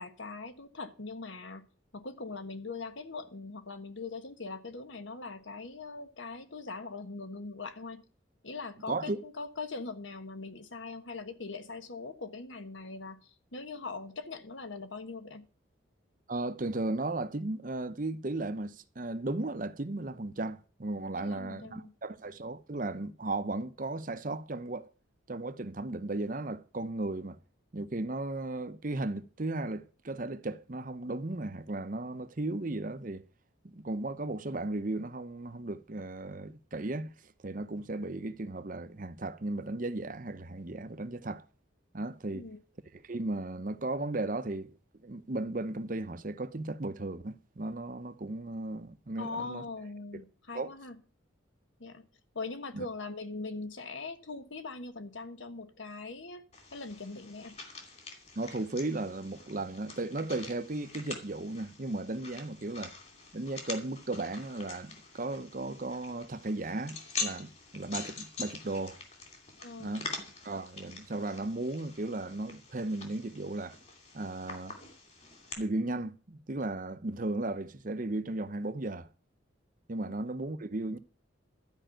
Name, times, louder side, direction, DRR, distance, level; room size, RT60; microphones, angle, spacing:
voice 1, 0.0-1.7 1.9-8.0 8.4-15.5 21.2-21.9 42.3-42.6 49.2-51.0 51.8-52.1 52.3-56.4 56.7-57.6 69.6-70.0, left 3 dB, 70° left, 1.3 m, -41 dB
voice 2, 8.9-9.2 16.3-24.9 25.3-27.4 27.7-33.2 33.6-37.1 37.4-41.4 41.9-42.4 42.9-44.7 45.0-49.6 50.1-50.2 50.5-50.7 52.7-52.8 58.4-62.9 63.3-69.0 69.8-70.1 70.4-73.8 74.1-74.8 75.6-79.1 79.9-81.0, right 2 dB, 40° right, 0.7 m, -35 dB
sound 1, 56.5-75.5, left 4 dB, 35° left, 2.7 m, -45 dB
12.5 x 5.6 x 9.0 m
head